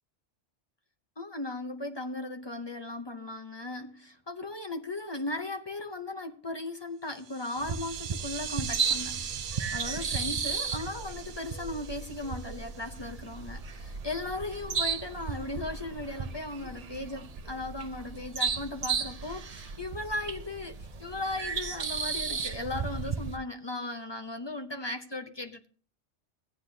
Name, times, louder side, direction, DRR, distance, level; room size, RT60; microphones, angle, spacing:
voice 1, 1.2-25.7, left 2 dB, 30° left, 0.5 m, -37 dB
sound 1, 7.2-13.2, right 8 dB, 80° right, 1.0 m, -41 dB
sound 2, 7.6-23.4, right 5 dB, 40° right, 0.6 m, -35 dB
15.5 x 9.4 x 2.7 m
omnidirectional pair, 1.2 m